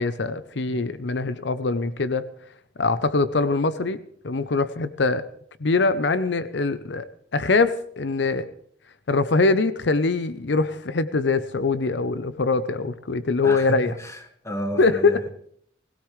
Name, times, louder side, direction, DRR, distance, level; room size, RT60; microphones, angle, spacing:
voice 1, 0.0-2.3 2.8-4.0 4.2-5.3 5.6-8.5 9.1-13.9 14.8-15.2, left 3 dB, 70° left, 0.7 m, -23 dB
voice 2, 13.4-15.3, equal, 15° left, 1.7 m, -32 dB
20.5 x 17.0 x 3.3 m
head